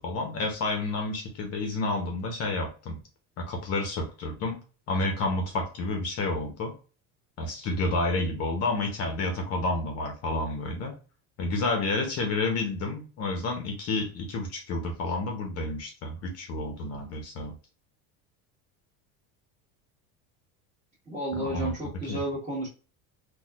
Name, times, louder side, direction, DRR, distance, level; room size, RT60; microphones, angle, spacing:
voice 1, 0.0-3.0 3.4-4.6 4.9-6.7 7.4-10.9 11.4-17.5 21.4-21.7 22.1-22.2, left 2 dB, 40° left, 3 dB, 0.8 m, -30 dB
voice 2, 21.1-22.7, right 1 dB, 20° right, -4 dB, 1.4 m, -32 dB
4.1 x 2.4 x 2.3 m, 0.35 s
cardioid pair, 150°, 39 cm